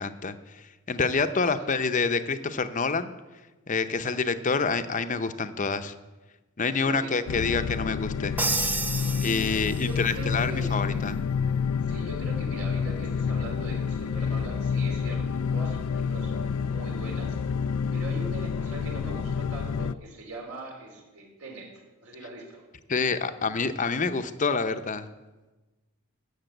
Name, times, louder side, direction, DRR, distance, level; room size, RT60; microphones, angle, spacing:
voice 1, 0.0-3.1 3.7-5.9 6.6-8.3 9.2-11.2 22.9-25.1, left 4 dB, 35° left, 10 dB, 0.7 m, -27 dB
voice 2, 6.8-7.3 9.8-11.2 11.9-17.4 17.9-21.7 22.0-22.6, right 2 dB, 75° right, 0 dB, 3.5 m, -41 dB
sound 1, 7.3-19.9, left 6 dB, 85° left, 0.4 m, -29 dB
Crash cymbal, 8.4-10.1, right 3 dB, 10° right, 0.5 m, -30 dB
14.5 x 6.9 x 9.1 m, 1.1 s
head